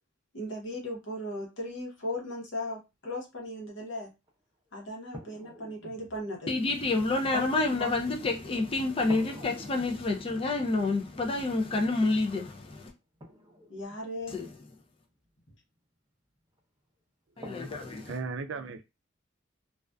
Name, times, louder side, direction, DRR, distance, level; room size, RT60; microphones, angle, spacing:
voice 1, 0.3-4.1 4.7-6.5 7.8-7.9 13.7-14.4, left 1 dB, 65° left, 0.9 m, -37 dB
sound 1, 4.3-4.4 5.1-8.6 9.1-15.2 16.6-16.7 17.4-18.3, equal, 20° right, 0.6 m, -50 dB
voice 2, 6.5-12.9 14.3-14.5 17.4-18.1, left 3 dB, 30° left, 0.4 m, -28 dB
voice 3, 18.1-18.8, right 4 dB, 70° right, 0.4 m, -36 dB
2.4 x 2.3 x 2.2 m
head